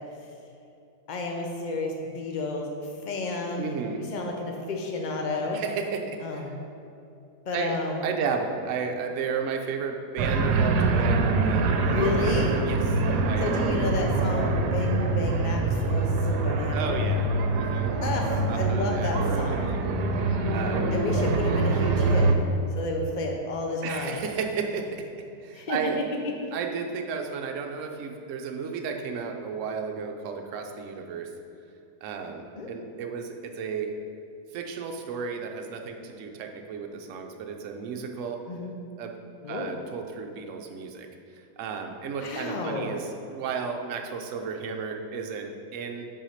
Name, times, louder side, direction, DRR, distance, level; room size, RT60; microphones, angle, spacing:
voice 1, 1.1-5.6 6.2-6.5 7.5-8.0 11.9-12.6 13.4-17.1 18.0-19.8 20.9-22.3 22.8-24.2 25.5-26.0 26.4-26.5 32.6-32.7 38.5-38.7 39.4-39.7 42.2-42.9, left 3 dB, 80° left, 1 dB, 0.4 m, -31 dB
voice 2, 3.6-4.0 5.5-6.6 7.5-7.8 8.0-12.4 12.6-12.8 13.2-13.5 16.7-17.3 17.5-17.9 18.5-19.8 20.5-21.0 23.8-25.1 25.4-26.0 26.5-31.3 32.0-33.9 34.5-38.4 39.0-39.2 39.5-41.1 41.6-46.1, right 5 dB, 60° right, 3 dB, 0.9 m, -33 dB
sound 1, 10.2-22.4, right 3 dB, 80° right, 1.2 m, -24 dB
5.9 x 4.9 x 5.7 m, 2.6 s
omnidirectional pair, 1.8 m